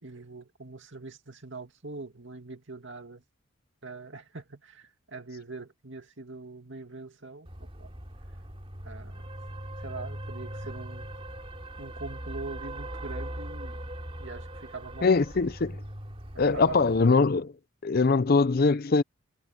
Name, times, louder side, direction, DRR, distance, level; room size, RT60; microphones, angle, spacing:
voice 1, 0.0-3.2 3.8-7.9 8.8-9.3 9.8-11.2 11.8-13.8 14.2-15.2 16.5-16.9, right 3 dB, 60° right, 2.5 m, -43 dB
sound 1, 7.5-17.1, right 1 dB, 25° right, 2.9 m, -40 dB
voice 2, 15.0-15.8 16.4-17.5 17.8-19.0, left 4 dB, 45° left, 0.5 m, -22 dB
head